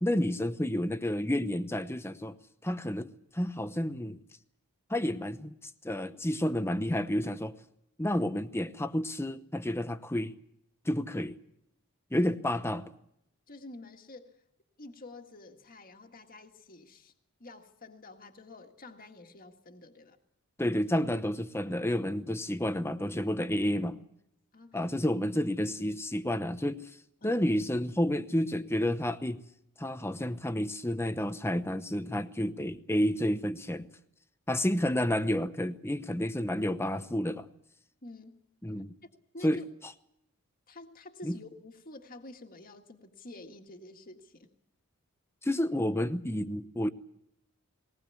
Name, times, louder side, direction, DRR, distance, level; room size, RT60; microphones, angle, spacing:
voice 1, 0.0-2.4 2.6-4.2 4.9-5.5 5.8-7.5 8.0-10.4 10.9-11.4 12.1-12.9 20.6-24.0 24.7-26.9 27.2-29.4 29.8-33.9 34.5-37.5 38.6-38.9 39.4-39.6 41.2-41.4 45.4-46.9, left 1 dB, 10° left, 0.8 m, -30 dB
voice 2, 13.5-14.4 14.8-17.1 17.4-20.2 24.5-24.8 27.2-27.4 38.0-38.4 39.3-39.6 40.7-44.5, left 2 dB, 40° left, 1.8 m, -49 dB
20.5 x 19.5 x 8.4 m
head